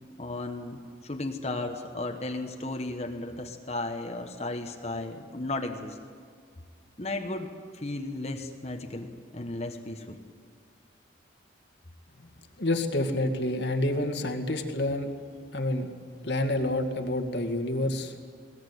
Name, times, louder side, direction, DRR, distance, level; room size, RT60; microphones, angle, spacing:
voice 1, 0.2-6.0 7.0-10.2, left 2 dB, 35° left, 4 dB, 1.4 m, -35 dB
voice 2, 12.6-15.1 15.5-15.9 16.2-18.1, left 1 dB, 65° left, 5 dB, 2.2 m, -28 dB
21.0 x 19.5 x 9.5 m, 2.1 s
head